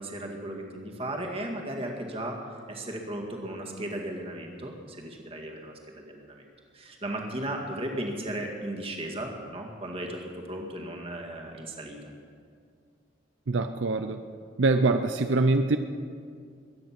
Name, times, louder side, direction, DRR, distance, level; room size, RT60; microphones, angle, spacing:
voice 1, 0.0-2.4 2.7-6.5 6.7-12.1, right 1 dB, 30° right, 1 dB, 2.0 m, -36 dB
voice 2, 13.5-14.2 14.6-15.8, right 3 dB, 75° right, 8 dB, 0.6 m, -24 dB
22.0 x 9.2 x 6.0 m, 2.2 s
head